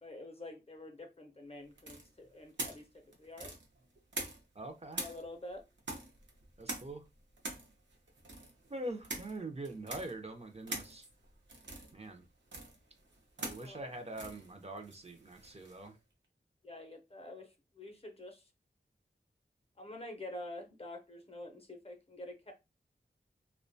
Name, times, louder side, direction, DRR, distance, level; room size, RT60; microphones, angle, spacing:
voice 1, 0.0-3.5 5.0-5.6 13.6-13.9 16.6-18.4 19.8-22.5, left 1 dB, 35° left, 0.6 m, -47 dB
sound 1, 1.8-4.6 4.9-15.9, right 2 dB, 85° right, 0.6 m, -45 dB
voice 2, 4.6-5.2 6.6-7.0 8.7-11.0 11.9-12.3 13.4-16.0, right 2 dB, 35° right, 0.4 m, -43 dB
2.3 x 2.1 x 2.5 m
wide cardioid pair, 65°, 18 cm